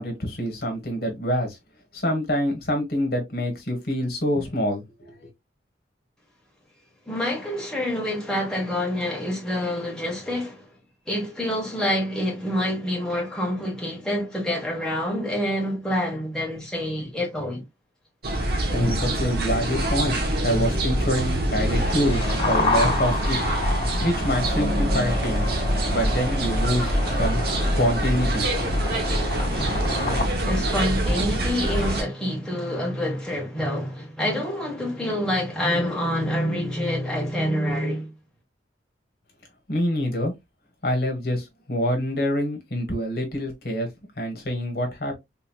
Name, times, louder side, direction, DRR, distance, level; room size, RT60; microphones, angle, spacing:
voice 1, 0.0-1.6 1.9-5.3 18.7-23.4 24.0-25.5 25.9-28.5 39.7-40.3 40.8-43.9 44.2-45.2, equal, 60° left, 1.2 m, -26 dB
voice 2, 7.1-10.7 11.1-17.6 30.4-38.1, equal, 5° left, 1.2 m, -27 dB
sound 1, 18.2-32.0, right 1 dB, 60° right, 0.9 m, -25 dB
sound 2, 21.5-30.2, left 2 dB, 30° left, 1.4 m, -30 dB
3.7 x 3.0 x 2.2 m
head